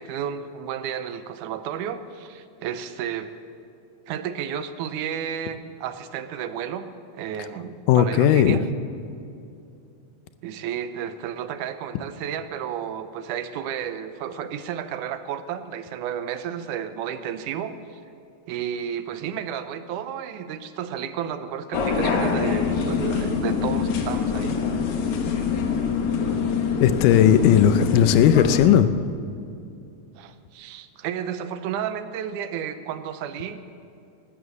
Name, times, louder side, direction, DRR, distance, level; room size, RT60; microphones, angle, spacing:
voice 1, 0.0-3.3 4.1-6.9 7.2-8.7 10.4-18.0 18.5-24.6 30.2-33.6, right 9 dB, 85° right, 11 dB, 2.2 m, -32 dB
voice 2, 7.9-8.6 26.8-28.9, left 10 dB, 85° left, 11 dB, 2.2 m, -16 dB
sound 1, 21.7-28.7, left 6 dB, 70° left, 2.7 m, -24 dB
12.5 x 12.5 x 8.3 m, 2.5 s
omnidirectional pair, 3.7 m